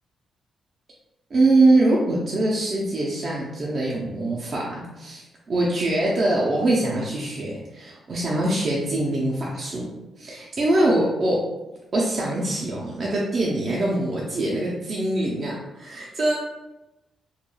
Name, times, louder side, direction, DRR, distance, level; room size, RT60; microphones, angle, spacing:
voice 1, 1.3-9.9 10.2-11.4 11.9-16.4, right 2 dB, 40° right, -4 dB, 0.4 m, -23 dB
2.2 x 2.2 x 3.0 m, 0.99 s
cardioid pair, 145°, 0 cm